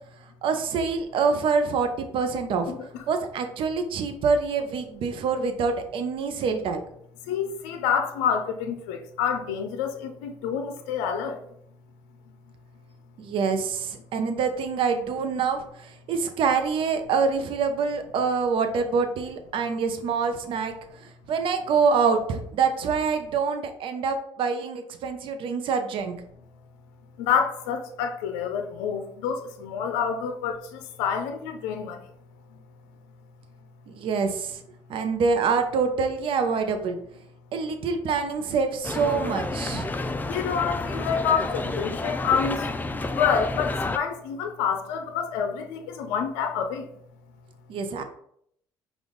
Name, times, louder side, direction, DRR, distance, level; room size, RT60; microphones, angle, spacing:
voice 1, 0.4-2.7 3.1-6.8 13.2-20.7 21.0-26.2 34.0-34.6 34.9-37.0 37.5-39.9 47.7-48.0, right 5 dB, 60° right, 7 dB, 0.7 m, -26 dB
voice 2, 7.3-11.4 27.2-32.1 40.3-42.7 43.1-46.9, left 7 dB, 85° left, 6 dB, 0.5 m, -27 dB
sound 1, 38.8-44.0, left 2 dB, 20° left, 0.4 m, -30 dB
5.3 x 2.4 x 3.8 m, 0.69 s
supercardioid pair, 75°, 10 cm